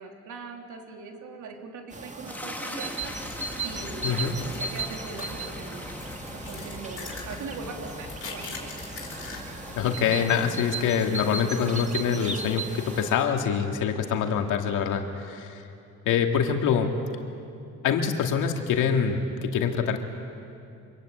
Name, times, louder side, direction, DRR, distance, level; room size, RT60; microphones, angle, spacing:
voice 1, 0.0-3.1 3.6-5.9 6.3-8.7, right 4 dB, 75° right, 2 dB, 3.5 m, -41 dB
sound 1, 1.9-13.1, right 3 dB, 25° right, 1.9 m, -37 dB
sound 2, 2.3-13.3, left 1 dB, 5° left, 2.7 m, -43 dB
sound 3, 3.0-9.9, left 4 dB, 45° left, 6.1 m, -42 dB
voice 2, 4.0-4.4 9.8-15.6 16.1-16.9 17.8-20.0, left 7 dB, 90° left, 4 dB, 2.3 m, -25 dB
26.0 x 23.0 x 8.9 m, 2.6 s
cardioid pair, 90°, 30 cm